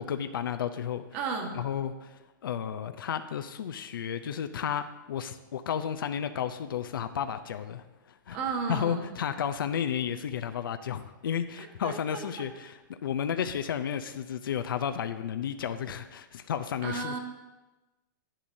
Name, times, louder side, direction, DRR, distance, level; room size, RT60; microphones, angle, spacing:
voice 1, 0.0-1.0 1.5-8.4 8.7-17.2, left 8 dB, 85° left, 8 dB, 0.5 m, -32 dB
voice 2, 1.1-1.6 8.3-9.0 11.6-12.2 16.8-17.2, right 5 dB, 40° right, 2 dB, 1.4 m, -33 dB
10.0 x 9.5 x 2.7 m, 1.1 s
hypercardioid pair, 150°, 11 cm